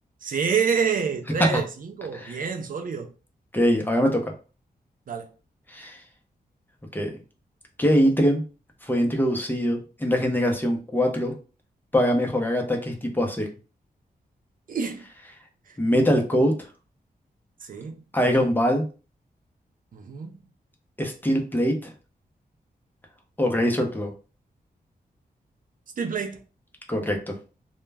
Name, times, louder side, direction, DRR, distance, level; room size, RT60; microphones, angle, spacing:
voice 1, 0.2-3.1 5.1-5.3 14.7-15.1 17.6-18.0 19.9-20.3 26.0-26.4, right 6 dB, 60° right, 0.4 m, -27 dB
voice 2, 3.5-4.3 5.7-6.0 6.9-7.1 7.8-8.4 8.8-11.3 11.9-13.5 15.8-16.5 18.1-18.8 21.0-21.9 23.4-24.1 26.9-27.3, equal, 10° left, 0.6 m, -23 dB
2.2 x 2.1 x 3.3 m
wide cardioid pair, 115°, 16 cm